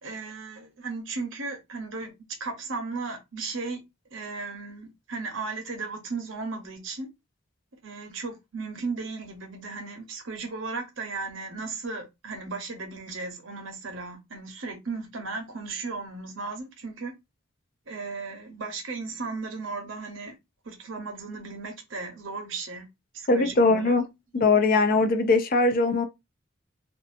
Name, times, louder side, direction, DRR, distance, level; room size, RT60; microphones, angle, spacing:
voice 1, 0.0-2.1 2.4-3.8 4.1-7.1 7.8-17.1 17.9-20.3 20.6-22.9 23.1-24.0, right 4 dB, 70° right, 0.9 m, -35 dB
voice 2, 23.3-24.0 24.3-26.1, left 3 dB, 45° left, 0.4 m, -21 dB
2.6 x 2.4 x 2.4 m
head